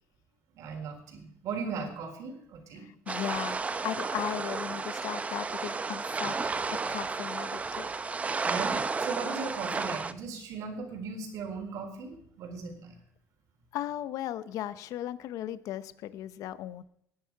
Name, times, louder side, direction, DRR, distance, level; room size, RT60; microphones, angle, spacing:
voice 1, 0.6-2.9 8.4-12.9, right 4 dB, 70° right, 4 dB, 3.9 m, -38 dB
voice 2, 2.7-6.5 6.9-7.9 13.7-16.8, left 12 dB, 75° left, 15 dB, 0.7 m, -37 dB
sound 1, 3.1-10.1, right 4 dB, 25° right, 0.7 m, -32 dB
20.0 x 10.5 x 4.7 m, 0.68 s
cardioid pair, 115°, 6 cm